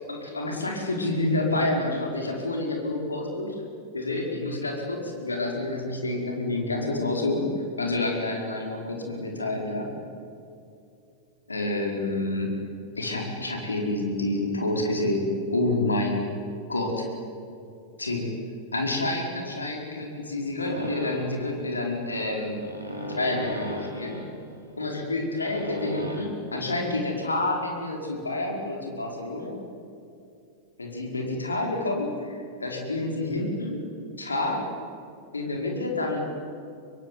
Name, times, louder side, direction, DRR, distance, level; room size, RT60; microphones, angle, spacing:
voice 1, 0.1-3.6 3.9-7.5 7.8-9.9 11.5-12.5 13.0-16.3 16.7-17.0 18.0-18.3 18.7-22.6 22.9-24.2 24.8-29.6 30.8-33.8 34.2-34.7 35.3-36.3, left 2 dB, 80° left, 1 dB, 5.0 m, -28 dB
sound 1, 20.7-26.2, equal, 85° right, 5.3 m, -37 dB
26.0 x 23.0 x 9.6 m, 2.5 s
figure-of-eight pair, 90°, 0 cm